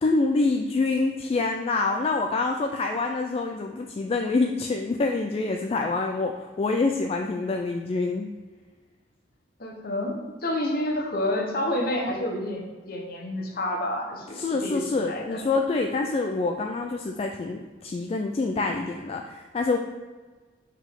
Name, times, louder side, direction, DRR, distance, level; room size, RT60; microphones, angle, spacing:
voice 1, 0.0-8.3 14.4-19.8, left 3 dB, 30° left, 3 dB, 0.3 m, -26 dB
voice 2, 9.6-15.4 15.7-15.8, left 1 dB, 55° left, 1 dB, 1.0 m, -29 dB
5.8 x 4.6 x 3.6 m, 1.4 s
head